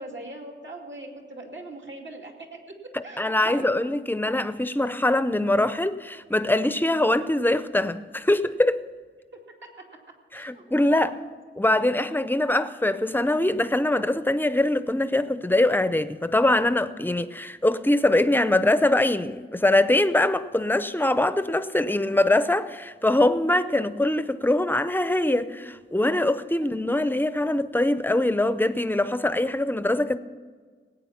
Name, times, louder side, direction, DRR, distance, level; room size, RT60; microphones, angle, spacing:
voice 1, 0.0-2.7 3.0-3.8 10.3-10.6 10.9-11.3 26.6-26.7, right 2 dB, 65° right, 2.4 m, -41 dB
voice 2, 2.9-8.8 10.3-11.1 11.6-30.2, left 1 dB, 10° left, 0.6 m, -23 dB
18.5 x 9.1 x 5.8 m
wide cardioid pair, 85°, 20 cm